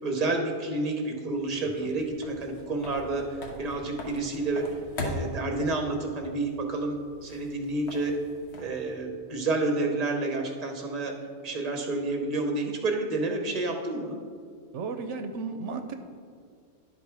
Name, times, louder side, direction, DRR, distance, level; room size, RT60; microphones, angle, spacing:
voice 1, 0.0-4.7 5.0-7.0 7.2-8.1 8.6-11.1 11.4-14.2, right 2 dB, 35° right, 3 dB, 0.9 m, -29 dB
sound 1, 1.3-9.0, left 1 dB, 65° left, 1.3 m, -41 dB
voice 2, 14.7-15.9, right 4 dB, 80° right, 7 dB, 0.9 m, -34 dB
11.0 x 3.8 x 4.6 m, 2.1 s
omnidirectional pair, 1.2 m